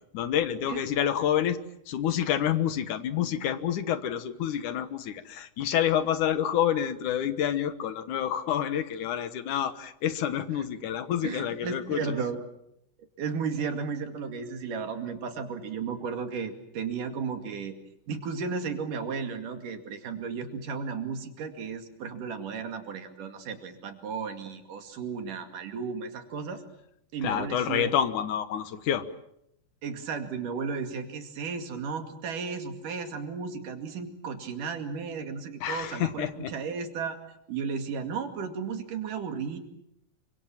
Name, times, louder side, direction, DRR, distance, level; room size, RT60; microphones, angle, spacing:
voice 1, 0.1-1.6 1.9-12.0 27.2-29.0 35.6-36.5, left 10 dB, 75° left, 11 dB, 2.7 m, -28 dB
voice 2, 11.2-12.4 13.2-17.7 18.1-26.6 27.1-27.9 29.8-37.2 37.5-39.6, right 5 dB, 75° right, 6 dB, 3.9 m, -34 dB
27.0 x 25.0 x 7.4 m, 0.78 s
omnidirectional pair, 3.7 m